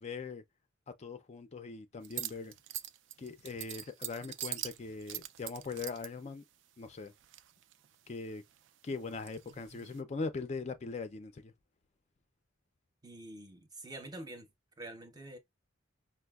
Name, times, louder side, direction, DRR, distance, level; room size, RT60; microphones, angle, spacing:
voice 1, 0.0-0.4 1.0-2.5 3.2-6.4 6.8-7.1 8.1-8.4 8.8-11.5, left 4 dB, 35° left, 0.4 m, -41 dB
sound 1, 2.0-6.1 7.1-7.9 8.3-10.0, right 12 dB, 65° right, 0.3 m, -43 dB
voice 2, 13.0-14.5 14.8-15.4, right 1 dB, 20° right, 0.6 m, -46 dB
5.3 x 2.0 x 2.2 m
head